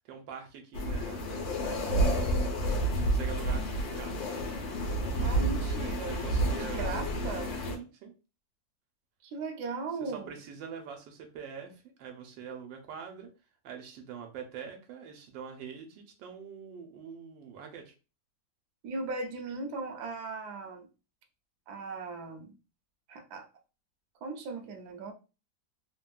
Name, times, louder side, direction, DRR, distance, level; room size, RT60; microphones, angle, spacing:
voice 1, 0.0-4.7 5.0-5.6 6.0-6.9 7.7-8.1 10.0-13.3 13.6-17.9, right 7 dB, 90° right, 1.3 m, -44 dB
sound 1, 0.7-7.8, right 1 dB, 85° left, 1.4 m, -30 dB
voice 2, 5.2-6.2 6.6-7.5 9.2-10.3 18.8-20.9 21.7-22.6 23.1-23.5 24.2-25.1, right 3 dB, 70° right, 1.0 m, -38 dB
3.3 x 2.2 x 2.3 m
omnidirectional pair, 2.0 m